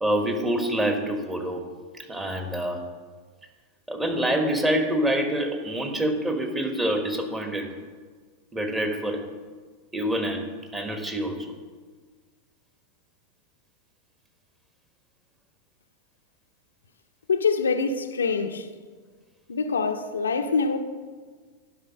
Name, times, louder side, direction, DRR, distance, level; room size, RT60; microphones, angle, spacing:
voice 1, 0.0-1.7 2.1-2.9 3.9-7.7 8.5-9.3 9.9-11.5, right 1 dB, 10° right, 1.2 m, -26 dB
voice 2, 17.3-18.7 19.5-20.8, left 5 dB, 70° left, 0.6 m, -25 dB
11.0 x 5.5 x 6.1 m
figure-of-eight pair, 90°, 0 cm